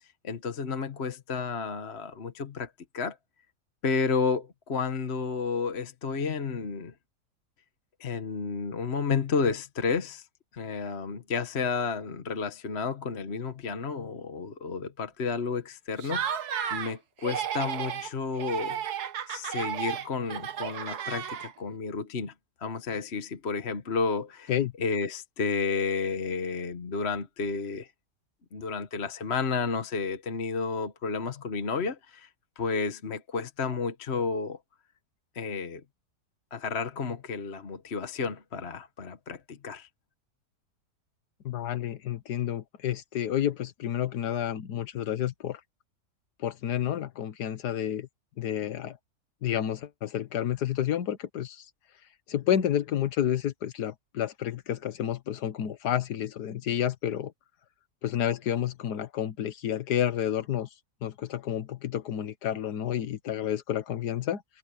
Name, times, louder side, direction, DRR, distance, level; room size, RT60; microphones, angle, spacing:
voice 1, 0.2-3.2 3.8-6.9 8.0-10.3 10.5-19.0 19.3-22.3 22.6-27.9 28.5-32.3 32.6-34.6 35.3-35.8 36.5-39.9, left 5 dB, 40° left, 1.4 m, -31 dB
Laughter, 16.0-16.9 17.2-18.1 18.4-21.7, right 9 dB, 70° right, 1.6 m, -33 dB
voice 2, 41.4-45.6 46.4-48.1 48.4-49.0 49.4-51.6 52.3-57.3 58.0-60.7 61.0-64.4, left 10 dB, 75° left, 1.6 m, -30 dB
omnidirectional pair, 1.8 m